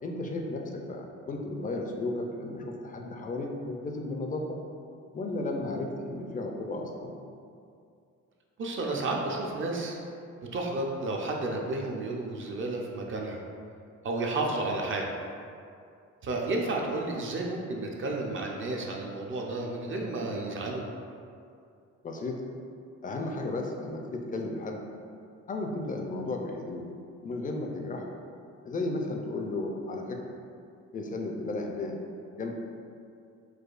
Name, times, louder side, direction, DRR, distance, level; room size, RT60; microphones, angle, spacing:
voice 1, 0.0-4.6 5.1-7.1 22.0-22.4 23.0-24.8 25.5-26.9 27.2-28.2 28.7-30.2 30.9-31.9 32.4-32.5, left 2 dB, 25° left, 2 dB, 0.4 m, -34 dB
voice 2, 8.6-10.0 10.5-13.4 14.0-15.1 16.2-20.8, right 2 dB, 40° right, 0 dB, 0.5 m, -32 dB
4.8 x 2.3 x 2.4 m, 2.4 s
cardioid pair, 90°, 30 cm